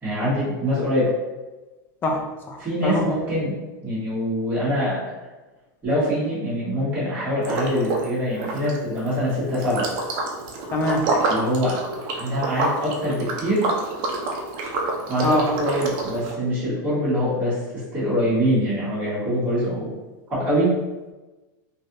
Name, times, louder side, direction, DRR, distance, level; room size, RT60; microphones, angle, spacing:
voice 1, 0.0-1.1 2.6-3.6 3.8-5.1 5.8-9.9 11.3-11.8 12.1-13.7 15.1-20.0 20.3-20.8, equal, 15° right, -13 dB, 1.3 m, -24 dB
voice 2, 2.0-3.2 10.7-11.1 15.2-15.5, left 1 dB, 20° left, 2 dB, 0.4 m, -24 dB
Liquid, 7.4-8.1 8.3-16.3, right 3 dB, 45° right, 0.5 m, -28 dB
3.2 x 2.7 x 2.6 m, 1.2 s
supercardioid pair, 160°, 11 cm